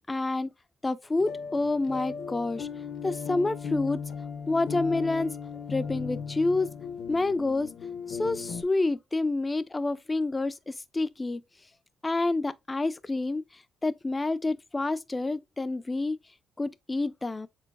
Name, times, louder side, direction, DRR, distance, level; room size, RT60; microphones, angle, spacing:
voice 1, 0.1-0.5 0.8-2.7 3.0-4.0 4.5-5.4 5.7-6.7 7.1-7.7 8.1-11.4 12.0-16.2 16.6-17.5, left 2 dB, 20° left, 0.4 m, -28 dB
sound 1, 1.2-8.6, left 6 dB, 60° left, 0.7 m, -37 dB
4.6 x 3.9 x 2.4 m
cardioid pair, 90°, 0 cm